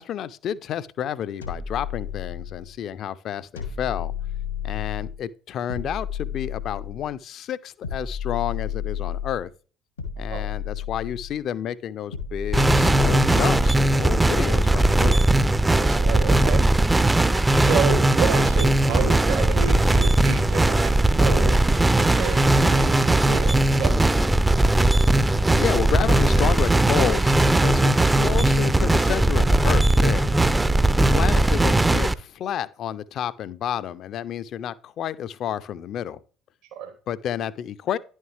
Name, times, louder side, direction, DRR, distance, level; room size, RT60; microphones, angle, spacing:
voice 1, 0.0-4.1 4.6-9.5 10.2-15.2 25.5-30.2 31.1-36.2 37.1-38.0, left 10 dB, 45° left, 0.5 m, -30 dB
sound 1, 1.4-2.7 3.6-5.2 5.7-7.1 7.8-9.4 10.0-11.4 12.1-13.7, left 8 dB, 85° left, 1.6 m, -31 dB
sound 2, 12.5-32.1, right 1 dB, 10° right, 0.4 m, -19 dB
voice 2, 15.7-16.7 17.6-21.6 22.0-24.0 36.7-36.9, right 7 dB, 60° right, 0.9 m, -30 dB
10.5 x 6.4 x 3.3 m
figure-of-eight pair, 60°, 0 cm